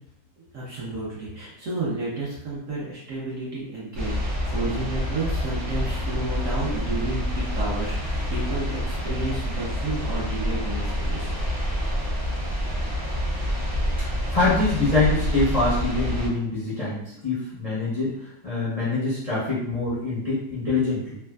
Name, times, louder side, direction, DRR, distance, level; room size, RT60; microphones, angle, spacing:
voice 1, 0.4-11.3, right 2 dB, 60° right, -7 dB, 0.8 m, -31 dB
sound 1, 3.9-16.3, equal, 35° right, 0.7 m, -27 dB
voice 2, 14.0-21.2, left 3 dB, 60° left, -10 dB, 0.3 m, -25 dB
3.3 x 2.1 x 2.2 m, 0.79 s
omnidirectional pair, 1.9 m